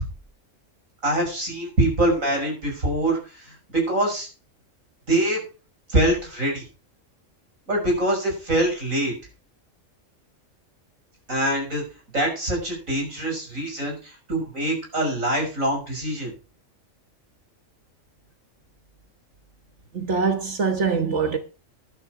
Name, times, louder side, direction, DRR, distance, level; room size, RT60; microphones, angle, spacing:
voice 1, 1.0-4.3 5.1-5.4 5.9-6.6 7.7-9.1 11.3-11.8 12.1-16.3, right 1 dB, 80° right, 6.6 m, -24 dB
voice 2, 19.9-21.4, right 5 dB, 60° right, 1.6 m, -23 dB
13.0 x 11.0 x 4.8 m
omnidirectional pair, 1.4 m